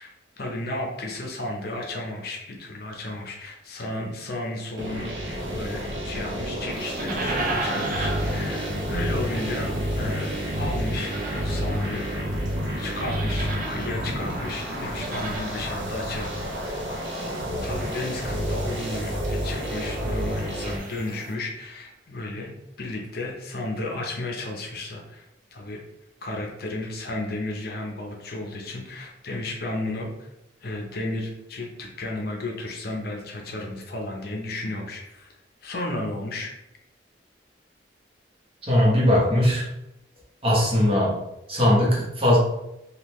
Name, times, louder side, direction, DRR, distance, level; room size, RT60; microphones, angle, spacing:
voice 1, 0.0-5.1 5.5-12.1 12.8-16.3 16.6-16.9 17.1-22.5 22.8-25.8 26.2-30.3 30.6-35.3 35.6-36.5, left 2 dB, 55° left, 1 dB, 0.6 m, -33 dB
sound 1, 4.8-20.8, equal, 80° right, 0.7 m, -29 dB
sound 2, 6.7-21.3, right 2 dB, 45° right, 0.6 m, -37 dB
voice 2, 38.6-39.7 40.4-41.2 41.5-42.4, left 1 dB, 30° right, -4 dB, 1.0 m, -20 dB
3.7 x 2.3 x 3.0 m, 0.87 s
head